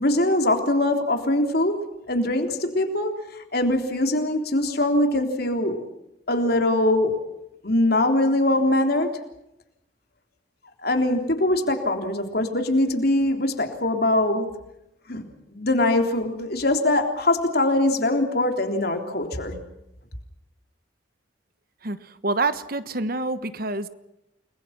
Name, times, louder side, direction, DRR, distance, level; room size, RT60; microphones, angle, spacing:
voice 1, 0.0-5.9 6.3-7.3 7.6-9.2 10.8-14.5 15.1-15.2 15.5-19.6, left 1 dB, 50° left, 5 dB, 3.6 m, -22 dB
voice 2, 21.8-23.9, right 3 dB, 45° right, 12 dB, 1.2 m, -27 dB
30.0 x 21.5 x 6.0 m, 0.85 s
head